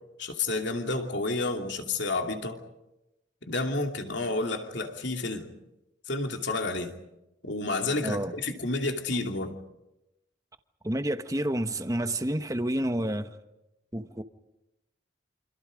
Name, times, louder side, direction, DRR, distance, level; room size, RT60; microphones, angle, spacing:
voice 1, 0.2-2.6 3.4-5.5 6.1-6.9 7.4-9.6, left 2 dB, 65° left, 2.8 m, -30 dB
voice 2, 8.0-8.3 10.8-13.4 13.9-14.2, right 1 dB, 15° right, 1.1 m, -29 dB
28.0 x 27.0 x 5.2 m
head